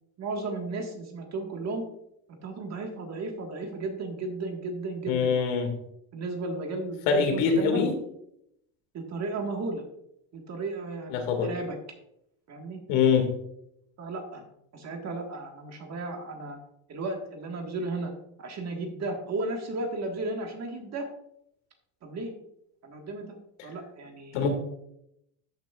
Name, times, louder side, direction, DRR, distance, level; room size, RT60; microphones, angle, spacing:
voice 1, 0.2-1.8 2.4-5.5 6.1-7.8 8.9-9.8 10.3-11.8 12.5-12.8 14.0-14.4 14.7-16.6 16.9-18.1 18.4-21.1 22.0-22.3 22.8-23.4 23.6-24.5, right 2 dB, 35° right, 2 dB, 1.6 m, -34 dB
voice 2, 5.1-5.7 7.1-7.9 11.1-11.5 12.9-13.3 24.3-24.5, left 6 dB, 80° left, 5 dB, 2.0 m, -23 dB
13.0 x 6.1 x 2.4 m, 0.77 s
supercardioid pair, 120°, 43 cm